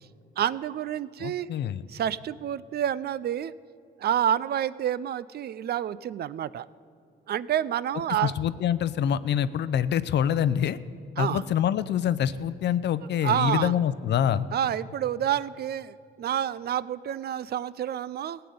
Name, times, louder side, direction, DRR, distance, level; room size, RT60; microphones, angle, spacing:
voice 1, 0.4-1.5 1.9-3.5 4.0-6.7 7.3-8.3 11.2-11.4 13.2-13.7 14.5-18.4, right 10 dB, 55° right, 18 dB, 0.4 m, -28 dB
voice 2, 1.2-1.8 8.2-10.8 11.2-14.5, left 9 dB, 60° left, 16 dB, 0.5 m, -25 dB
15.0 x 6.8 x 9.4 m, 2.4 s
cardioid pair, 90°, 20 cm